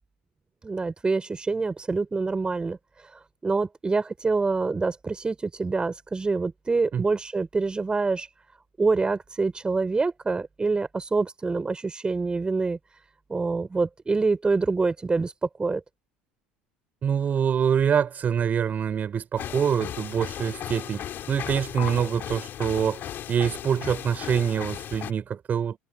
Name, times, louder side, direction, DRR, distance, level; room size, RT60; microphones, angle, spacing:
voice 1, 0.6-2.8 3.4-8.3 8.8-12.8 13.3-15.8, right 3 dB, 20° right, 6.8 m, -26 dB
voice 2, 17.0-23.0 23.3-25.8, right 7 dB, 40° right, 5.7 m, -25 dB
sound 1, 19.4-25.1, left 11 dB, 50° left, 7.9 m, -36 dB
hypercardioid pair, 75°, 4 cm